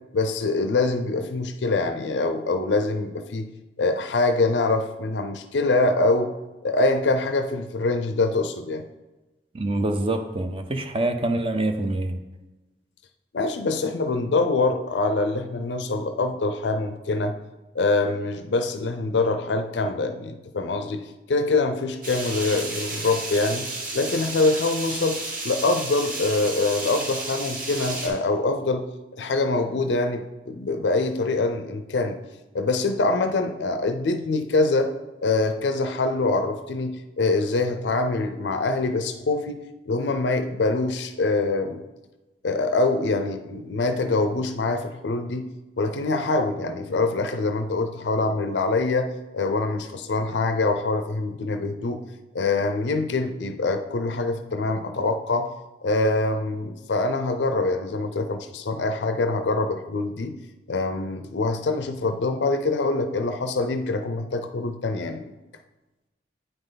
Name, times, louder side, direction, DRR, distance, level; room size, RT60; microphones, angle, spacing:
voice 1, 0.1-3.5 3.8-6.3 6.6-8.8 13.3-17.3 17.7-21.0 21.3-23.7 23.9-28.9 29.1-32.2 32.5-34.9 35.2-39.6 39.9-41.8 42.4-45.5 45.8-52.0 52.3-55.5 55.8-60.3 60.7-65.3, left 3 dB, 75° left, 8 dB, 0.5 m, -24 dB
voice 2, 9.5-12.2, right 1 dB, 30° right, 7 dB, 0.6 m, -25 dB
sound 1, 22.0-28.1, right 2 dB, 50° right, 1.7 m, -32 dB
9.0 x 5.4 x 3.9 m, 1.1 s
head